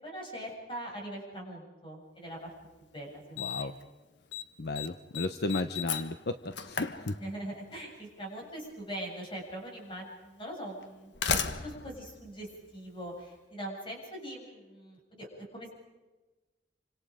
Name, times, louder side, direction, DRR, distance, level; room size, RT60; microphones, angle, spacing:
voice 1, 0.0-2.5 2.9-3.7 7.2-11.3 11.6-15.7, right 1 dB, 30° left, -1 dB, 7.8 m, -42 dB
Slam, 2.6-2.7 3.4-3.8 4.1-4.5 4.8-7.7 8.8-8.9 9.8-9.9 10.8-13.2, left 6 dB, 85° left, 1.4 m, -35 dB
voice 2, 3.4-3.7 4.6-6.4 6.6-7.2, left 2 dB, 65° left, 9 dB, 0.9 m, -33 dB
28.0 x 26.0 x 5.0 m, 1.2 s
head